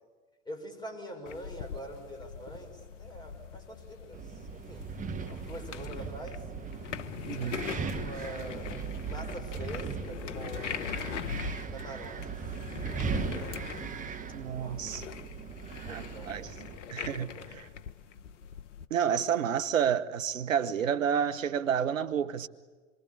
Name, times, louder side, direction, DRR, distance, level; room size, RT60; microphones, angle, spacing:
voice 1, 0.5-4.8 5.3-6.5 7.4-8.7 9.0-11.1 11.7-12.4 13.0-13.9 14.6-14.9 15.8-16.5 16.8-17.5, right 1 dB, 10° left, 5.9 m, -45 dB
sound 1, 1.3-18.9, left 8 dB, 65° left, 1.2 m, -42 dB
Wind, 4.1-16.8, right 6 dB, 20° right, 1.5 m, -38 dB
voice 2, 7.3-7.7 14.3-15.1 15.9-16.5 16.9-17.6 18.9-22.5, right 8 dB, 75° right, 1.2 m, -30 dB
26.5 x 23.5 x 8.6 m
figure-of-eight pair, 95°, 40 cm